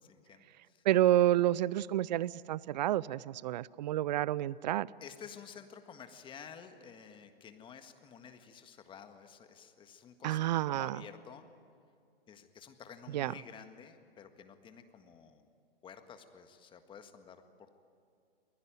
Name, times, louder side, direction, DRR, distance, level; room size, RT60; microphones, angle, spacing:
voice 1, 0.0-0.8 5.0-11.5 12.3-15.5 15.8-17.4, left 7 dB, 15° left, 8 dB, 1.7 m, -52 dB
voice 2, 0.8-4.9 10.2-11.0 13.1-13.3, right 13 dB, 45° right, 23 dB, 0.6 m, -29 dB
28.5 x 21.0 x 9.1 m, 2.5 s
figure-of-eight pair, 120°, 30 cm